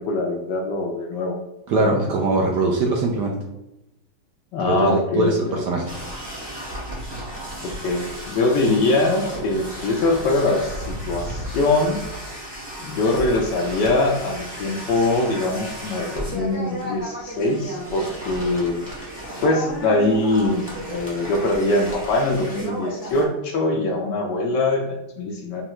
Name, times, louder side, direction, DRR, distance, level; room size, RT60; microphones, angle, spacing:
voice 1, 0.0-1.4 1.8-2.1 4.5-5.7 7.6-12.0 12.8-18.8 19.4-25.6, left 2 dB, 75° left, 1 dB, 1.1 m, -22 dB
voice 2, 1.7-3.3 4.6-5.9, right 3 dB, 75° right, 0 dB, 1.0 m, -21 dB
sound 1, 5.9-23.3, right 1 dB, 20° right, 0.6 m, -34 dB
5.3 x 2.3 x 2.9 m, 0.93 s
omnidirectional pair, 2.2 m